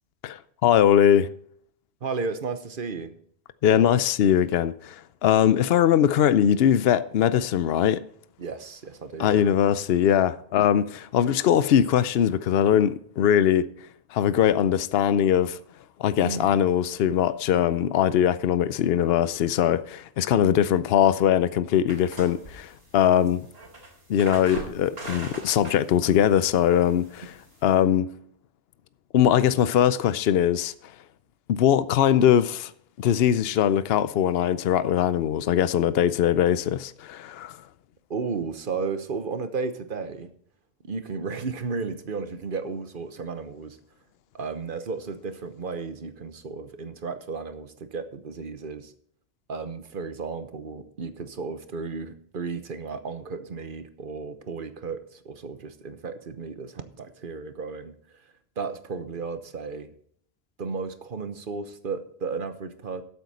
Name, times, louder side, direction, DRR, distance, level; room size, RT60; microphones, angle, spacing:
voice 1, 0.2-1.3 3.6-8.0 9.2-13.7 14.1-15.6 16.0-23.5 24.1-27.3 27.6-28.1 29.1-30.7 31.5-32.7 33.0-37.6, left 9 dB, 75° left, 0.8 m, -21 dB
voice 2, 2.0-3.2 8.4-9.5 16.2-16.6 38.1-40.3 40.8-43.8 44.3-48.9 49.5-59.9 60.6-63.0, right 4 dB, 60° right, 1.2 m, -34 dB
sound 1, 21.9-27.8, right 1 dB, 75° right, 3.6 m, -42 dB
13.0 x 8.1 x 4.2 m
omnidirectional pair, 1.0 m